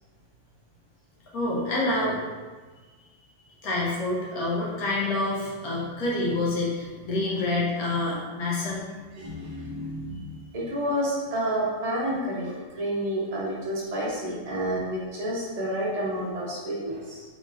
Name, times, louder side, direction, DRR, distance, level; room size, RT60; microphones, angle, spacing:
voice 1, 1.3-2.2 3.6-8.9, left 2 dB, 60° left, -5 dB, 1.3 m, -27 dB
voice 2, 9.1-17.2, right 1 dB, 35° right, -6 dB, 0.7 m, -30 dB
3.6 x 3.5 x 2.6 m, 1.4 s
omnidirectional pair, 1.9 m